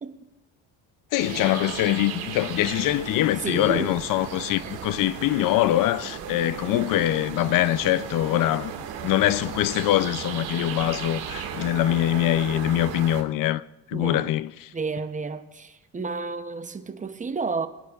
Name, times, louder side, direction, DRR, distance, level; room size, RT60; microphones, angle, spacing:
voice 1, 1.1-8.7 9.0-14.7, left 14 dB, 60° left, 0.6 m, -23 dB
sound 1, 1.2-13.2, right 8 dB, 80° right, 2.0 m, -35 dB
voice 2, 3.4-4.0 4.6-4.7 6.7-6.8 13.9-14.3 14.7-17.7, right 4 dB, 20° right, 0.7 m, -31 dB
23.0 x 10.0 x 2.4 m
cardioid pair, 110°, 37 cm